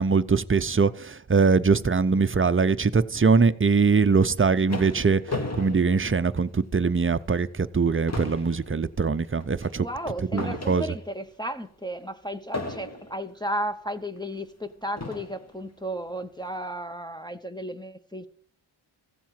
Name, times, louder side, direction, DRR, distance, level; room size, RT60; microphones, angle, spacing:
voice 1, 0.0-9.9 10.3-10.8, right 4 dB, 25° right, 0.6 m, -22 dB
sound 1, 4.1-6.8 7.3-7.4 7.7-11.3 12.5-13.3 14.2-14.3 15.0-15.5, left 2 dB, 30° left, 1.4 m, -36 dB
voice 2, 9.8-18.3, equal, 10° left, 0.7 m, -34 dB
15.0 x 7.4 x 5.7 m
wide cardioid pair, 60°, 48 cm